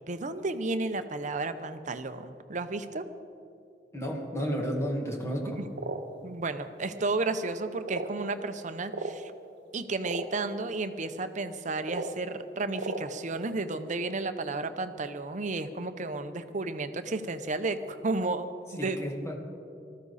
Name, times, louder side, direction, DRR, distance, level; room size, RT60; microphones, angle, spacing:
voice 1, 0.1-3.0 5.5-5.7 6.2-9.3 9.7-18.4 18.8-19.0, right 3 dB, 45° right, 10 dB, 0.8 m, -32 dB
voice 2, 3.9-5.6 18.8-19.3, equal, 15° left, 0 dB, 1.9 m, -32 dB
sound 1, 5.7-6.0 6.9-7.0 7.8-8.2 8.9-9.1 10.0-10.2 11.8-12.1 12.7-13.0, right 3 dB, 75° right, 1.0 m, -35 dB
19.5 x 14.0 x 4.2 m, 2.5 s
head